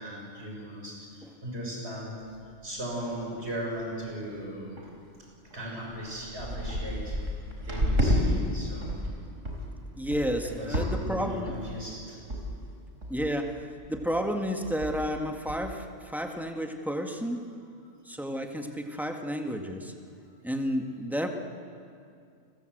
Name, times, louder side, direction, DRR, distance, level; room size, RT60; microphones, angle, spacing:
voice 1, 0.0-2.1 2.6-4.8 5.5-7.2 7.6-9.0 10.4-12.2, equal, 55° right, -2 dB, 6.7 m, -37 dB
sound 1, 3.4-3.6 3.9-4.2 4.8-4.9 5.5-5.6 5.9-8.2 8.6-9.1 9.4-9.7 10.1-10.4 10.7-11.1 11.5-11.8 12.3-12.4 12.7-12.8 13.0-13.4 13.8-14.0 14.3-14.4 14.6-15.0 15.5-15.6, equal, 80° right, 4.8 m, -30 dB
voice 2, 10.0-11.5 13.1-17.5 18.1-19.9 20.4-21.3, equal, ahead, 4 dB, 1.8 m, -31 dB
29.5 x 21.5 x 8.0 m, 2.3 s
omnidirectional pair, 1.3 m